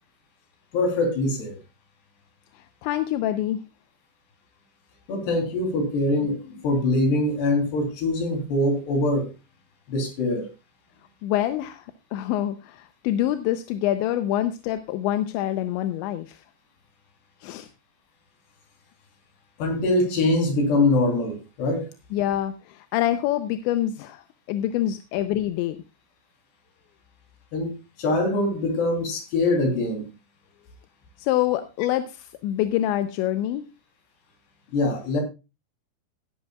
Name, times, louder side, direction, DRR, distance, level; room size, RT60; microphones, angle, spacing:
voice 1, 0.7-1.6 5.1-9.3 9.9-10.5 19.6-21.8 27.5-27.7 28.0-30.0 34.7-35.2, left 2 dB, 65° left, 5.4 m, -23 dB
voice 2, 2.8-3.6 11.2-11.9 12.1-16.4 17.4-17.7 22.1-24.2 24.5-25.8 31.2-33.7, left 12 dB, 90° left, 3.1 m, -26 dB
16.0 x 11.0 x 2.4 m
omnidirectional pair, 5.1 m